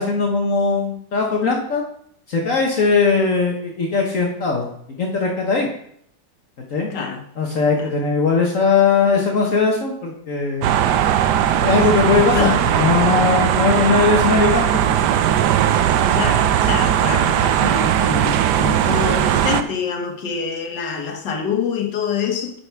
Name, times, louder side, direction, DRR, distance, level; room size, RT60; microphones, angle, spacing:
voice 1, 0.0-1.8 2.3-4.7 5.0-5.7 6.7-6.9 7.4-10.8 11.6-14.6, left 4 dB, 50° left, 1.4 m, -19 dB
voice 2, 6.9-7.2 7.8-7.9 11.9-12.6 16.0-22.6, left 6 dB, 75° left, 1.8 m, -26 dB
sound 1, 10.6-19.6, right 10 dB, 75° right, 1.1 m, -18 dB
8.7 x 5.7 x 4.6 m
omnidirectional pair, 1.9 m